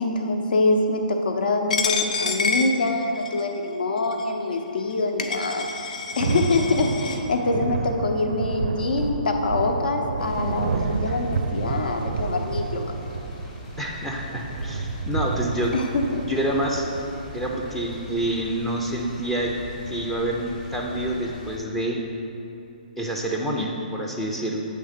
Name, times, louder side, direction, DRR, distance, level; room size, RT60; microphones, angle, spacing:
voice 1, 0.0-12.9 15.7-16.3, left 2 dB, 70° left, 3 dB, 0.9 m, -25 dB
Coin (dropping), 1.7-3.5 4.1-4.2 4.9-5.0 5.2-7.2, left 5 dB, 55° left, 0.6 m, -28 dB
Thunder / Rain, 5.7-18.1, right 4 dB, 60° right, 0.4 m, -30 dB
sound 1, 10.2-21.6, left 2 dB, 25° left, 1.1 m, -40 dB
voice 2, 10.7-11.2 13.8-15.7 16.2-16.9 17.3-19.6 19.9-22.0 23.0-24.6, right 1 dB, 5° left, -2 dB, 0.4 m, -27 dB
8.3 x 3.4 x 6.5 m, 2.9 s
hypercardioid pair, 165°, 5 cm